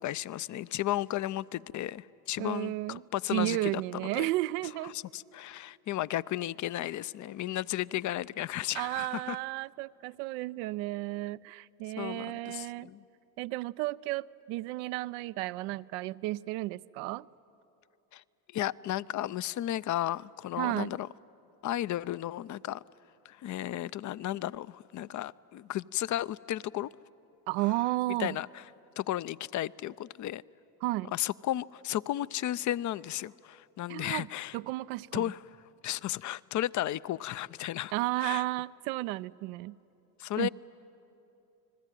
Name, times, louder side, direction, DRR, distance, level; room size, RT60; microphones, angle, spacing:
voice 1, 0.0-4.3 4.9-9.4 12.0-13.0 18.1-18.2 18.5-21.1 21.6-22.8 23.2-26.9 28.2-28.6 29.0-30.4 31.1-34.6 35.1-35.4 35.8-37.9 38.2-38.4 40.2-40.5, left 13 dB, 40° left, 19 dB, 0.5 m, -34 dB
voice 2, 2.4-3.0 3.3-4.9 8.7-12.9 13.4-17.3 20.6-21.0 27.5-28.4 30.8-31.1 33.9-34.3 34.5-35.3 37.9-39.8 40.4-40.5, right 19 dB, 75° right, 15 dB, 0.6 m, -33 dB
29.0 x 20.5 x 9.2 m, 2.8 s
hypercardioid pair, 75°, 47 cm